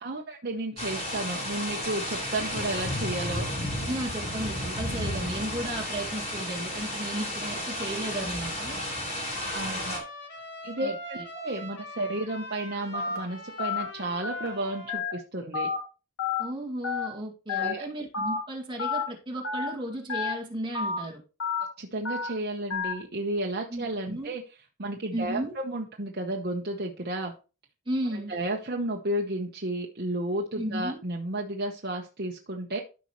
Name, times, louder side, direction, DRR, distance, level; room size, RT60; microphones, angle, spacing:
voice 1, 0.0-3.5 9.5-10.0 10.6-15.7 17.5-17.8 21.8-24.4 24.8-27.3 28.1-32.8, right 1 dB, 45° right, 0 dB, 1.0 m, -32 dB
sound 1, 0.8-10.0, left 1 dB, 30° left, 3.7 m, -33 dB
voice 2, 3.9-8.8 10.8-11.2 16.4-21.2 23.7-24.3 25.1-25.6 27.9-28.3 30.6-31.0, right 1 dB, 20° right, -1 dB, 2.2 m, -34 dB
Trumpet, 7.4-15.0, left 1 dB, 55° left, 2.0 m, -43 dB
Telephone, 12.9-13.2 13.6-13.8 14.2-14.5 14.9-15.1 15.5-15.8 16.2-16.4 16.8-17.1 17.5-17.7 18.1-18.4 18.8-19.0 19.4-19.7 20.1-20.3 20.7-21.0 21.4-21.6 22.1-22.3 22.7-22.9, left 5 dB, 70° left, 2.9 m, -29 dB
13.5 x 5.3 x 3.1 m, 0.33 s
head